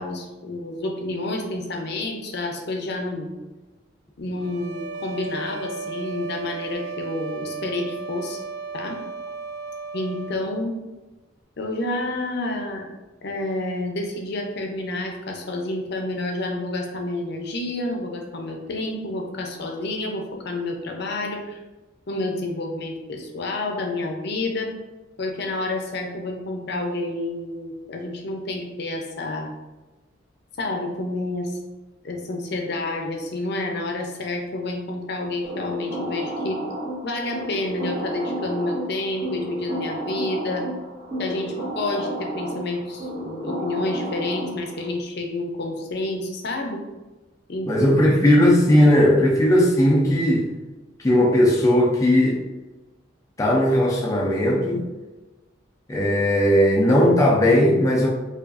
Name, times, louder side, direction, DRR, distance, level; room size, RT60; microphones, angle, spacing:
voice 1, 0.0-3.3 4.2-8.4 8.7-9.0 9.9-10.8 11.6-12.9 13.2-21.6 22.1-24.7 25.2-29.5 30.6-31.5 32.0-36.6 37.0-40.7 41.2-46.8 47.5-48.1, left 2 dB, 60° left, 2 dB, 0.6 m, -29 dB
sound 1, 4.4-10.4, right 5 dB, 70° right, 0.3 m, -35 dB
sound 2, 35.4-44.9, right 1 dB, 45° right, 0.8 m, -32 dB
voice 2, 47.7-50.5 51.0-52.4 53.4-54.8 55.9-58.1, left 1 dB, 15° left, -2 dB, 0.4 m, -17 dB
4.6 x 2.4 x 2.5 m, 1.1 s
head